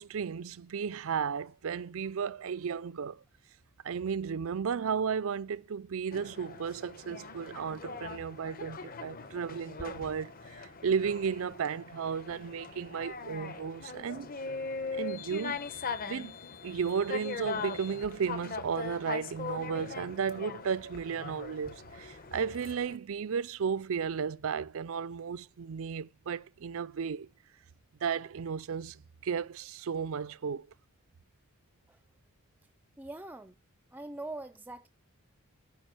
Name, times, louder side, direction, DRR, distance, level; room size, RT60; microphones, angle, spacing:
voice 1, 0.0-3.2 3.8-10.3 10.6-14.3 14.9-15.7 16.1-16.3 16.6-27.3 28.0-29.0 29.2-30.7, right 6 dB, 65° right, 0.4 m, -34 dB
sound 1, 6.1-23.0, left 4 dB, 40° left, 1.0 m, -41 dB
voice 2, 33.0-33.6 33.9-34.9, right 2 dB, 10° right, 0.4 m, -42 dB
10.0 x 5.0 x 7.6 m
head